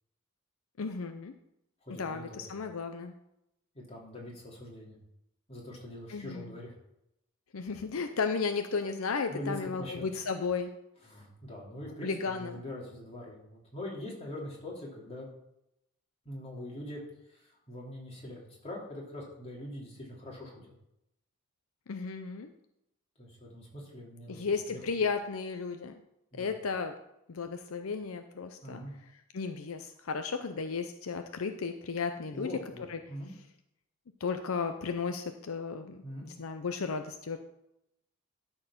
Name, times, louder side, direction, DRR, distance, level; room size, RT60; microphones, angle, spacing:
voice 1, 0.8-1.3 2.0-3.1 6.1-6.5 7.5-10.7 12.0-12.6 21.9-22.5 24.3-25.9 26.4-26.9 27.3-28.8 29.3-32.5 32.9-33.0 34.2-37.4, left 5 dB, 80° left, 7 dB, 0.6 m, -34 dB
voice 2, 1.8-2.5 3.7-5.0 5.5-6.7 9.3-9.9 11.0-15.3 16.2-17.0 17.3-20.7 23.2-24.8 26.3-26.5 28.6-28.9 32.3-33.3 36.0-36.3, left 1 dB, 30° left, -3 dB, 3.1 m, -43 dB
12.5 x 4.5 x 5.8 m, 0.83 s
head